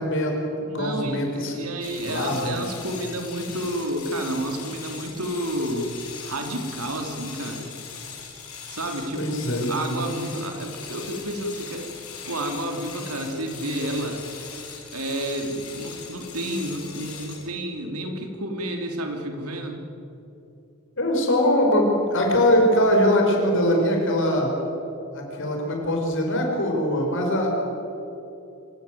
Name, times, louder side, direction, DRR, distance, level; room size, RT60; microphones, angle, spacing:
voice 1, 0.0-1.7 2.0-2.6 9.1-10.0 21.0-24.5 25.1-27.5, left 1 dB, 60° left, 1 dB, 5.8 m, -22 dB
voice 2, 0.6-5.9 6.2-7.7 8.7-11.8 12.3-14.2 14.9-19.8, right 1 dB, 85° right, 4 dB, 3.6 m, -30 dB
sound 1, 1.8-17.5, left 6 dB, 85° left, 5.6 m, -40 dB
26.0 x 16.0 x 9.5 m, 2.9 s
head